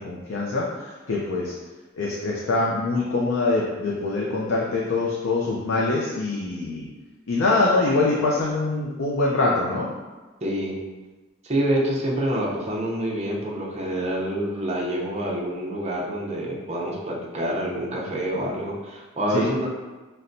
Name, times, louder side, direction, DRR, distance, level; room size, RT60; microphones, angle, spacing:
voice 1, 0.0-1.6 2.0-6.9 7.3-9.9 19.3-19.5, left 3 dB, 75° left, -4 dB, 0.5 m, -24 dB
voice 2, 10.4-10.8 11.4-19.7, right 1 dB, 35° right, -4 dB, 0.7 m, -27 dB
5.8 x 2.2 x 2.6 m, 1.3 s
head